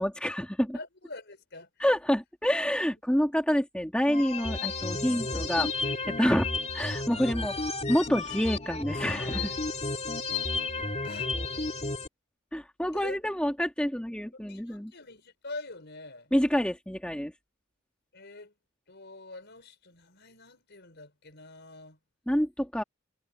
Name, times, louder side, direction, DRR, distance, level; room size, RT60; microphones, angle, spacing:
voice 1, 0.0-0.8 1.8-6.5 6.7-7.6 7.9-9.5 12.5-14.9 16.3-17.3 22.3-22.8, equal, 5° left, 2.2 m, -28 dB
voice 2, 0.7-1.9 11.0-11.3 12.9-13.2 14.5-16.3 18.1-18.5 18.9-22.0, left 2 dB, 55° left, 5.6 m, -45 dB
sound 1, 4.1-12.1, left 3 dB, 30° left, 2.3 m, -32 dB
head